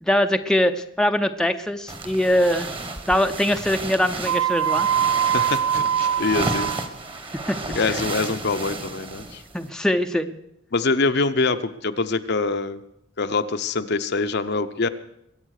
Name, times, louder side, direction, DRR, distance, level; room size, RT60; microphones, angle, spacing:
voice 1, 0.0-2.7 3.1-4.9 7.5-7.6 9.5-10.4, left 1 dB, 5° left, 6 dB, 0.6 m, -22 dB
sound 1, 1.9-9.7, right 2 dB, 25° right, 1.4 m, -32 dB
sound 2, 4.3-6.9, right 9 dB, 80° right, 0.5 m, -22 dB
voice 2, 5.3-6.7 7.7-9.4 10.7-12.8 13.2-14.9, left 3 dB, 55° left, 9 dB, 0.8 m, -24 dB
22.0 x 9.0 x 6.5 m, 0.79 s
head